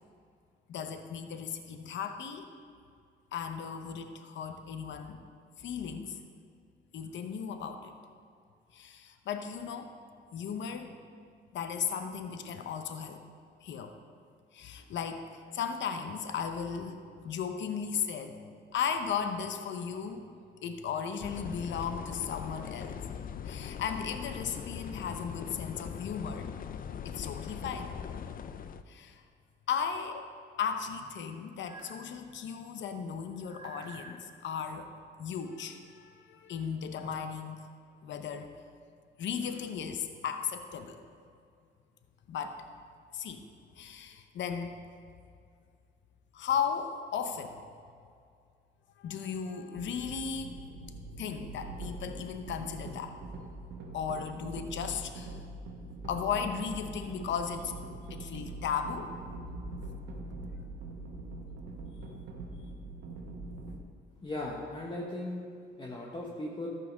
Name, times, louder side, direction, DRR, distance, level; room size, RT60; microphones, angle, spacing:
voice 1, 0.7-2.5 3.3-5.2 5.6-6.2 6.9-7.9 8.7-9.9 10.3-10.9 11.5-13.2 13.6-13.9 14.5-17.0 17.2-18.5 18.7-23.0 23.5-26.5 27.0-27.9 28.9-29.2 29.7-30.2 30.6-34.9 35.2-37.6 38.0-38.5 39.2-41.0 42.3-42.6 43.1-43.5 43.8-44.7 46.3-47.6 49.0-50.6 51.2-53.1 53.9-55.4 56.0-57.7 58.1-59.1, left 7 dB, 65° left, 6 dB, 0.8 m, -36 dB
sound 1, 21.2-28.8, left 7 dB, 45° left, 0.5 m, -41 dB
sound 2, 31.6-32.1 33.4-34.2, right 3 dB, 20° right, 1.7 m, -49 dB
sound 3, 49.7-63.8, right 2 dB, 70° right, 1.2 m, -43 dB
voice 2, 64.2-65.4 65.8-66.7, left 1 dB, 25° left, -3 dB, 1.2 m, -37 dB
13.0 x 5.6 x 5.4 m, 2.3 s
cardioid pair, 90°, 20 cm